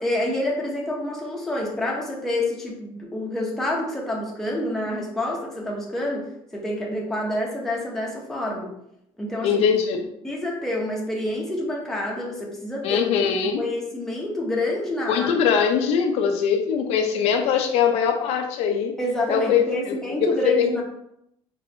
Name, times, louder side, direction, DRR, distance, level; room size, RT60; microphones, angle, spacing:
voice 1, 0.0-8.7 9.2-9.6 10.2-13.1 13.6-15.3 19.0-20.8, left 1 dB, 5° left, -3 dB, 0.7 m, -28 dB
voice 2, 9.4-10.0 12.8-13.6 15.1-18.9 19.3-20.8, left 7 dB, 75° left, 4 dB, 0.6 m, -22 dB
4.1 x 3.5 x 2.7 m, 0.77 s
cardioid pair, 170°, 11 cm